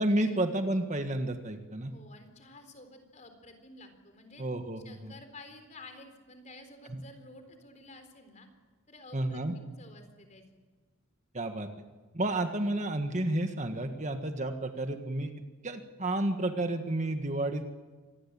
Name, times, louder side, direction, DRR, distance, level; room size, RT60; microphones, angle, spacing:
voice 1, 0.0-1.9 4.4-5.1 6.9-7.0 9.1-9.6 11.3-11.7 12.1-15.3 15.6-17.6, right 1 dB, 35° right, 6 dB, 1.5 m, -31 dB
voice 2, 1.9-4.4 4.8-8.5 8.9-10.5, left 2 dB, 35° left, 7 dB, 3.9 m, -51 dB
25.5 x 19.5 x 8.7 m, 1.4 s
head